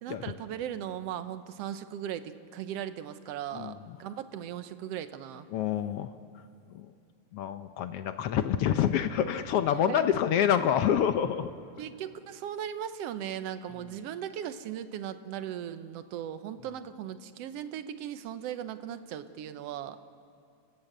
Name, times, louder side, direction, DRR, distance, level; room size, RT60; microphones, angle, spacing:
voice 1, 0.0-5.5 9.7-10.1 11.8-20.0, right 10 dB, 65° right, 11 dB, 1.7 m, -38 dB
voice 2, 5.5-6.1 6.7-6.9 7.3-11.5, left 9 dB, 75° left, 9 dB, 1.4 m, -27 dB
30.0 x 15.0 x 8.0 m, 2.3 s
omnidirectional pair, 3.5 m